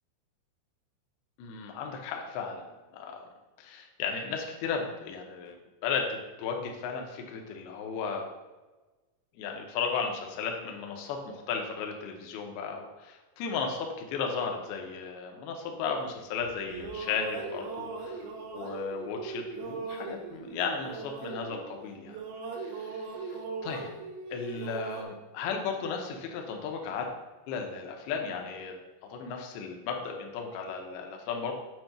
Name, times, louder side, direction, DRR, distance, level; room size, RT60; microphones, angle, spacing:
voice 1, 1.4-3.3 3.6-5.6 5.8-8.2 9.4-18.1 18.5-22.2 22.6-23.9 24.3-27.1 27.5-28.7 29.1-31.5, left 5 dB, 90° left, 2 dB, 2.2 m, -35 dB
sound 1, 16.4-21.8 22.1-25.0, right 4 dB, 90° right, 2.1 m, -39 dB
7.7 x 2.6 x 5.7 m, 1.2 s
omnidirectional pair, 5.3 m